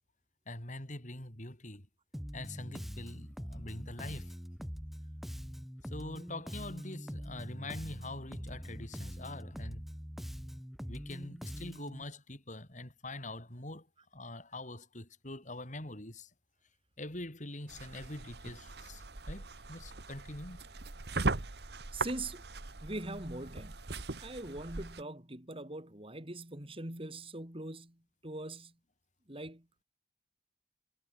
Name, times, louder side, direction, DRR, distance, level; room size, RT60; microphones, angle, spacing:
voice 1, 0.5-1.9 2.3-4.3 5.9-9.9 10.9-13.9 14.1-16.3 17.0-20.6, left 2 dB, 45° left, 6.0 m, -44 dB
Bass guitar, 2.1-12.0, equal, ahead, 7.1 m, -43 dB
sound 1, 17.7-25.0, right 3 dB, 65° right, 1.6 m, -39 dB
voice 2, 21.9-22.5 22.8-23.8 24.2-28.7 29.3-29.8, right 2 dB, 30° right, 4.0 m, -42 dB
head